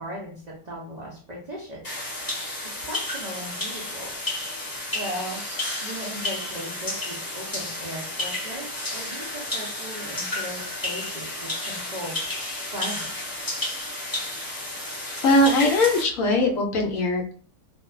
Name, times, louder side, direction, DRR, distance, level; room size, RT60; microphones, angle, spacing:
voice 1, 0.0-1.8 2.7-4.1 4.6-5.4 5.8-12.2 12.7-13.4, equal, 80° right, -4 dB, 0.3 m, -37 dB
sound 1, 1.8-16.0, left 1 dB, 20° left, 0.6 m, -32 dB
voice 2, 15.2-17.3, left 1 dB, 70° left, 2 dB, 0.9 m, -21 dB
2.5 x 2.1 x 2.4 m, 0.43 s
omnidirectional pair, 1.6 m